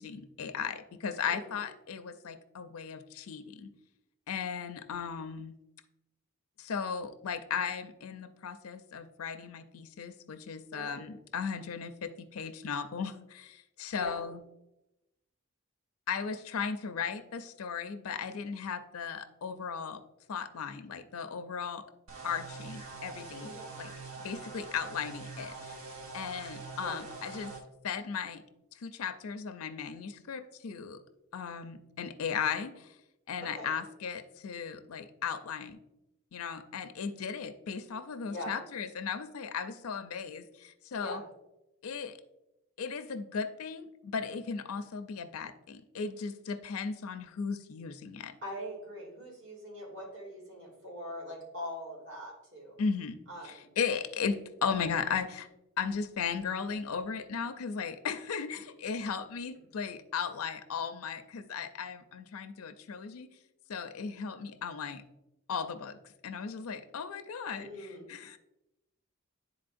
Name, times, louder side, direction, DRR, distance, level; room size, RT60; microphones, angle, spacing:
voice 1, 0.0-3.7 4.3-5.5 6.6-14.4 16.1-20.0 20.3-21.8 22.2-23.5 23.8-23.9 24.2-25.8 26.1-27.5 27.8-28.4 28.8-31.0 31.3-32.9 33.3-35.8 36.3-41.2 41.8-42.2 42.8-48.3 52.8-53.2 53.4-55.5 55.8-63.3 63.7-65.0 65.5-66.0 66.2-68.4, left 6 dB, 80° left, 9 dB, 0.5 m, -36 dB
voice 2, 13.9-14.3 23.4-23.7 26.8-27.0 33.5-33.7 38.2-38.5 40.9-41.2 48.4-52.8 53.3-53.7 67.6-68.0, equal, 55° right, -4 dB, 2.4 m, -42 dB
sound 1, 22.1-27.6, right 4 dB, 80° right, 1.1 m, -44 dB
10.5 x 4.1 x 2.5 m, 0.91 s
head